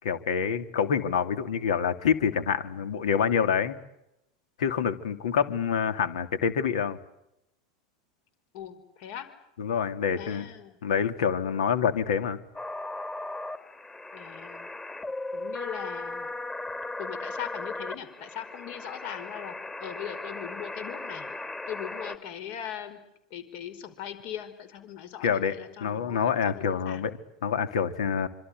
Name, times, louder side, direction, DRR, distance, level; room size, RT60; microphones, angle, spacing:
voice 1, 0.0-3.8 4.6-7.0 9.6-10.5 10.8-12.4 25.2-25.5 25.8-28.3, left 7 dB, 75° left, 11 dB, 2.9 m, -27 dB
voice 2, 8.5-9.3 10.1-10.8 14.1-14.7 15.3-16.3 17.0-21.3 21.7-23.0 23.3-27.1, left 10 dB, 55° left, 11 dB, 5.3 m, -40 dB
sound 1, 12.5-22.2, left 2 dB, 15° left, 3.1 m, -37 dB
27.0 x 26.5 x 8.0 m, 0.83 s
hypercardioid pair, 95°, 4 cm